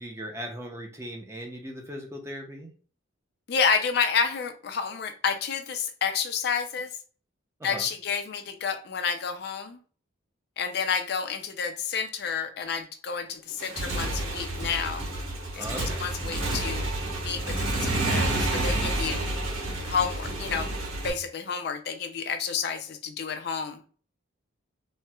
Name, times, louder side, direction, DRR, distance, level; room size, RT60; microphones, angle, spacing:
voice 1, 0.0-2.7 7.6-7.9 15.6-16.1, equal, 15° right, 2 dB, 0.5 m, -38 dB
voice 2, 3.5-6.9 7.6-9.8 10.6-15.0 15.5-16.8 17.2-19.2 19.8-20.7 21.0-23.8, left 6 dB, 55° left, 8 dB, 0.4 m, -30 dB
Motorcycle / Engine, 13.5-21.1, right 1 dB, 85° right, 1.3 m, -29 dB
4.2 x 2.0 x 2.2 m, 0.41 s
head